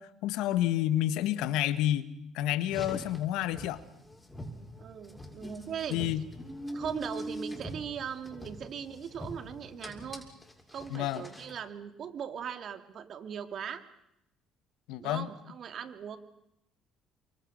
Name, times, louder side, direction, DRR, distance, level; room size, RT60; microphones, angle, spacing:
voice 1, 0.0-2.1 2.3-3.8 5.9-6.2 10.9-11.2 14.9-15.3, left 13 dB, 80° left, 13 dB, 1.6 m, -29 dB
Car, 2.6-11.6, equal, 10° left, 7.2 m, -43 dB
voice 2, 4.8-6.0 6.7-10.2 10.7-13.8 15.0-16.2, right 8 dB, 60° right, 8 dB, 2.6 m, -39 dB
29.5 x 24.5 x 6.5 m, 0.81 s
supercardioid pair, 70°, 0 cm